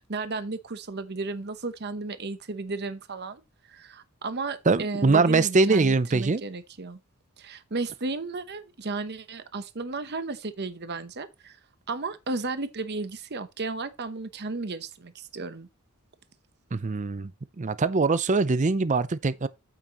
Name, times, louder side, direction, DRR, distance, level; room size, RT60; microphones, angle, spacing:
voice 1, 0.0-3.4 3.7-7.0 7.4-11.6 11.9-15.7, right 3 dB, 50° right, 0.9 m, -34 dB
voice 2, 4.7-6.4 16.7-17.3 17.6-19.5, right 3 dB, 35° right, 0.5 m, -22 dB
8.9 x 8.7 x 3.0 m
head